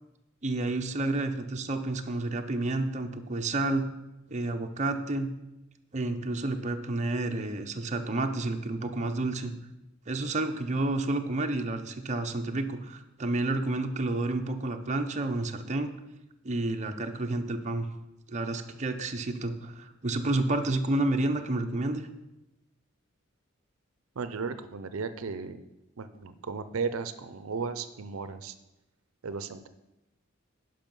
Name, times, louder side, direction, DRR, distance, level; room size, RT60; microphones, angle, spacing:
voice 1, 0.4-3.9 4.3-5.3 5.9-9.5 10.1-15.9 16.4-17.9 18.3-22.1, right 2 dB, 35° right, 5 dB, 0.7 m, -30 dB
voice 2, 24.2-25.7 26.0-28.5 29.2-29.7, right 5 dB, 85° right, 12 dB, 0.6 m, -35 dB
10.5 x 5.5 x 5.4 m, 0.95 s
head